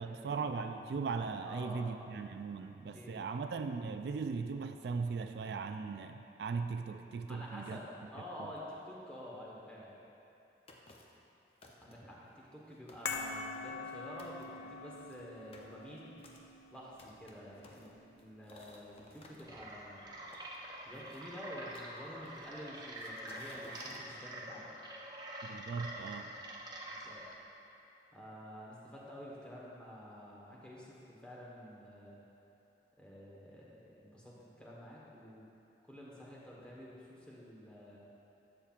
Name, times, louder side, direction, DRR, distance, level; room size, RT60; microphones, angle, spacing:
voice 1, 0.0-7.8 8.4-8.5 25.4-26.4, right 4 dB, 70° right, 7 dB, 0.3 m, -38 dB
voice 2, 1.4-1.9 2.9-3.2 7.3-9.9 11.8-16.1 16.7-20.1 20.8-24.7 26.9-27.2 28.1-32.2 33.0-35.5 35.8-38.0, equal, 5° left, -6 dB, 1.1 m, -49 dB
sound 1, 10.7-11.2 11.6-12.2 12.6-12.7 12.9-13.9 14.2-14.4 15.0-19.4 20.3-21.2 21.7-22.5 23.0-24.1, left 2 dB, 35° left, 0.6 m, -58 dB
sound 2, 13.1-19.5 19.7-19.9, left 4 dB, 75° left, 0.5 m, -45 dB
sound 3, 19.4-27.3, right 1 dB, 25° right, 0.7 m, -46 dB
11.0 x 7.3 x 2.4 m, 3.0 s
head